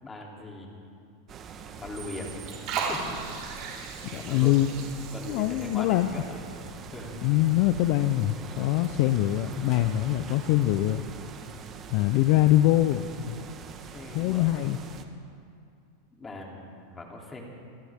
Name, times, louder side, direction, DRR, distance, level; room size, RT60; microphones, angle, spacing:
voice 1, 0.0-0.8 1.6-2.6 2.9-3.0 4.1-4.5 5.1-7.2 13.9-14.5 16.1-17.4, left 2 dB, 15° left, -1 dB, 3.2 m, -41 dB
sound 1, 1.3-15.1, right 6 dB, 30° right, 1.4 m, -43 dB
Liquid, 1.5-13.0, right 5 dB, 50° right, 4.3 m, -41 dB
voice 2, 4.1-4.7 5.3-6.1 7.2-11.0 11.9-13.4 14.1-14.8, left 15 dB, 55° left, 11 dB, 0.6 m, -23 dB
27.0 x 14.5 x 3.6 m, 2.4 s
supercardioid pair, 120°, 0 cm